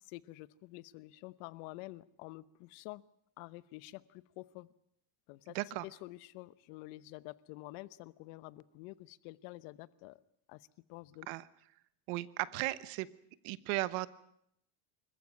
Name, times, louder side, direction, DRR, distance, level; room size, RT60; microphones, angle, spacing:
voice 1, 0.1-3.0 3.4-4.7 5.3-10.2 10.5-10.6 10.9-11.3, left 19 dB, 85° left, 18 dB, 1.0 m, -49 dB
voice 2, 5.5-5.9 11.3-11.4 12.1-13.1 13.4-14.1, right 19 dB, 85° right, 17 dB, 1.2 m, -35 dB
25.5 x 15.0 x 9.7 m, 0.75 s
cardioid pair, 120°, 45 cm